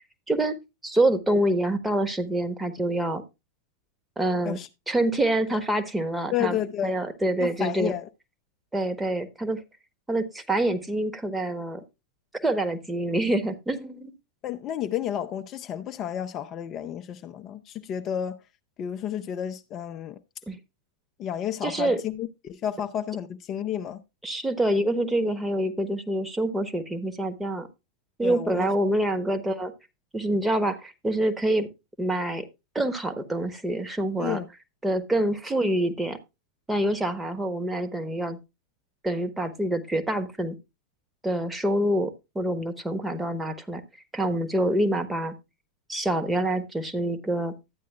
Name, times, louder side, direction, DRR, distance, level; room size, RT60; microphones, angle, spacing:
voice 1, 0.3-0.6 0.8-3.2 4.2-4.6 4.9-6.6 6.8-7.9 8.7-9.6 10.1-11.8 12.4-14.1 20.5-20.6 21.6-22.0 24.2-27.7 28.2-29.7 30.1-31.7 32.0-32.4 32.7-34.4 34.8-36.2 36.7-38.4 39.0-40.6 41.2-43.8 44.1-45.3 45.9-47.5, right 1 dB, 10° right, 1.1 m, -26 dB
voice 2, 6.3-6.9 7.4-8.1 14.4-18.4 18.8-20.2 21.2-24.0 28.2-28.7 34.2-34.5, left 10 dB, 30° left, 0.6 m, -31 dB
12.5 x 9.2 x 2.3 m
figure-of-eight pair, 90°, 0 cm